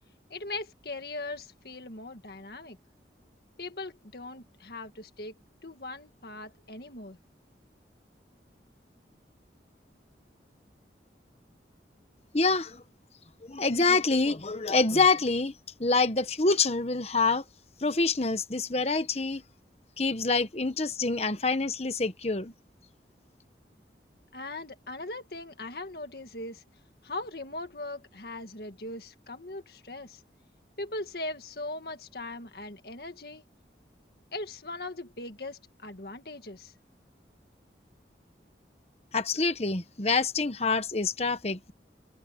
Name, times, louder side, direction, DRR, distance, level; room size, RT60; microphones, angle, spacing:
voice 1, 0.3-2.8 3.6-5.3 5.6-7.2 24.3-26.6 27.0-30.2 30.8-33.4 34.3-36.7, left 2 dB, 60° left, 1.9 m, -39 dB
voice 2, 12.3-12.8 13.4-15.5 15.8-17.4 17.8-19.4 20.0-22.5 39.1-41.7, left 3 dB, 35° left, 1.2 m, -26 dB
head